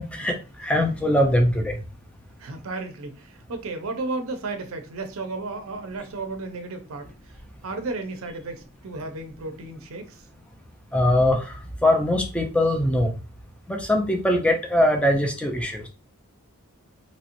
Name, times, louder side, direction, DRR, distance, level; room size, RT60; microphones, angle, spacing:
voice 1, 0.0-1.8 10.9-11.5 11.8-13.1 13.7-15.9, left 1 dB, 5° left, 0.5 m, -22 dB
voice 2, 2.4-7.1 7.6-10.2, right 3 dB, 65° right, 0.5 m, -33 dB
3.0 x 2.9 x 2.5 m
head